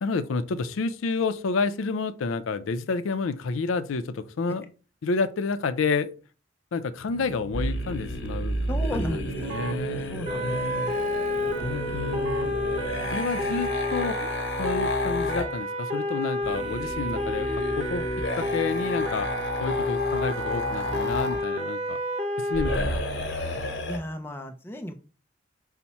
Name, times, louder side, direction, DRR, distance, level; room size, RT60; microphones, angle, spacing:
voice 1, 0.0-4.6 5.0-6.1 6.7-8.6 8.9-10.9 11.6-12.4 13.1-14.3 14.6-18.1 18.4-19.3 19.6-22.0 22.4-23.3 23.5-23.7, left 4 dB, 85° left, 0.4 m, -30 dB
Keyboard (musical), 7.1-13.9, right 7 dB, 70° right, 0.3 m, -41 dB
sound 1, 7.5-15.5 16.4-21.4 22.5-24.0, left 1 dB, 55° left, 1.0 m, -31 dB
voice 2, 8.7-9.4 10.1-10.8 11.3-12.0 12.9-13.2 23.8-24.9, equal, 10° left, 0.4 m, -35 dB
sound 2, 10.3-22.8, left 1 dB, 35° right, 0.7 m, -30 dB
5.7 x 2.1 x 4.1 m
head